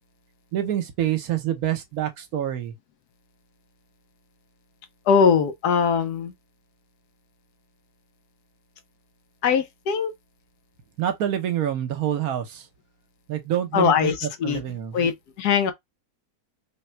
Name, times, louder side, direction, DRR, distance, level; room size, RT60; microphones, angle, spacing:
voice 1, 0.5-2.7 11.0-12.7 13.3-14.1 14.4-15.1, right 11 dB, 70° right, 1.2 m, -26 dB
voice 2, 5.1-6.3 9.4-10.1 13.7-14.6 14.9-15.7, left 6 dB, 85° left, 1.4 m, -21 dB
3.8 x 2.3 x 4.3 m
omnidirectional pair, 1.6 m